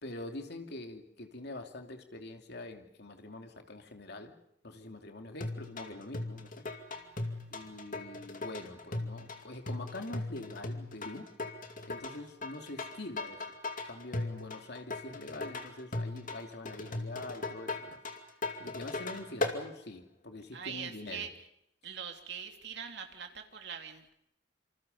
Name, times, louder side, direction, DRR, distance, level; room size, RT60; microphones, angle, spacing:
voice 1, 0.0-4.3 4.6-6.6 7.5-11.3 11.9-13.5 13.9-18.0 18.6-21.3, left 2 dB, 65° left, 4 dB, 2.8 m, -44 dB
sound 1, 5.4-19.6, left 2 dB, 45° left, 2.5 m, -38 dB
voice 2, 6.9-7.7 12.1-12.2 20.5-21.3 21.8-24.1, right 7 dB, 65° right, 4 dB, 3.1 m, -43 dB
27.0 x 26.5 x 5.5 m, 0.77 s
head